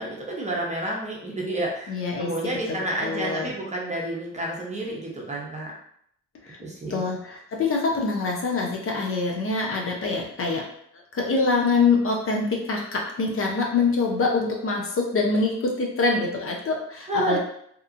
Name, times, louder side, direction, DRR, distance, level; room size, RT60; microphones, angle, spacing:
voice 1, 0.0-5.7 6.6-7.0 17.1-17.4, right 1 dB, 25° right, -3 dB, 0.8 m, -30 dB
voice 2, 1.9-2.3 2.7-3.5 6.4-6.6 6.9-10.7 11.1-17.4, left 3 dB, 45° left, 0 dB, 0.6 m, -25 dB
2.9 x 2.3 x 2.4 m, 0.69 s
cardioid pair, 90°, 30 cm